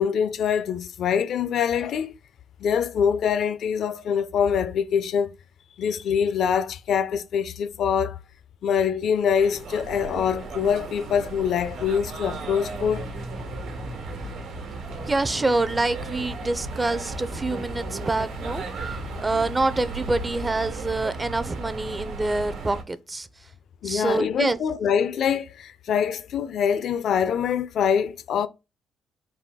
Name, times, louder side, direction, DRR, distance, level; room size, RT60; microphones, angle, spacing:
voice 1, 0.0-2.2 2.6-5.3 5.8-8.2 8.6-13.1 23.8-28.5, left 7 dB, 65° left, 0.4 m, -24 dB
sound 1, 9.2-22.8, right 2 dB, 85° right, 1.2 m, -35 dB
voice 2, 15.1-18.6 19.2-23.3 23.8-24.6, right 2 dB, 20° right, 0.4 m, -26 dB
4.1 x 2.6 x 3.5 m
cardioid pair, 90°, 0 cm